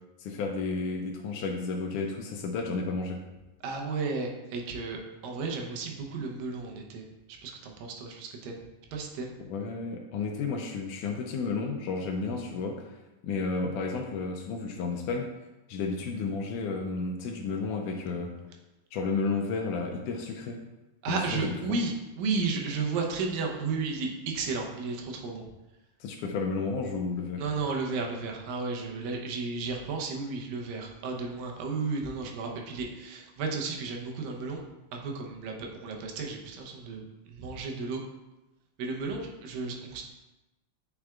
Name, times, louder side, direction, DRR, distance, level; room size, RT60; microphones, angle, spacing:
voice 1, 0.2-3.2 9.5-12.9 13.2-15.3 15.7-18.3 18.9-20.6 21.1-21.8 26.0-27.4, left 4 dB, 80° left, 2 dB, 2.0 m, -32 dB
voice 2, 3.6-7.0 7.4-8.6 8.9-9.3 21.0-25.4 27.4-34.6 34.9-38.0 38.8-40.0, right 4 dB, 85° right, 1 dB, 2.6 m, -33 dB
8.8 x 4.9 x 2.4 m, 1.0 s
omnidirectional pair, 3.9 m